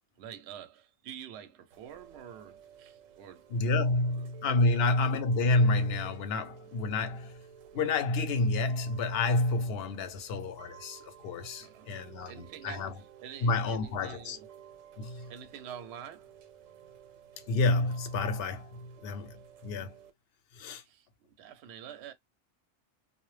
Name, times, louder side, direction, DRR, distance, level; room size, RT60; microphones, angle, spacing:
voice 1, 0.2-4.3 4.7-4.8 10.1-10.2 11.6-14.5 15.0-16.3 20.8-22.1, right 9 dB, 65° right, 0.8 m, -48 dB
Chime / Rain, 1.7-20.1, right 9 dB, 90° right, 1.0 m, -54 dB
voice 2, 3.5-7.4 7.7-12.9 13.4-14.4 15.0-15.3 17.5-20.0 20.5-20.8, left 2 dB, 60° left, 0.7 m, -29 dB
2.1 x 2.0 x 3.1 m
omnidirectional pair, 1.3 m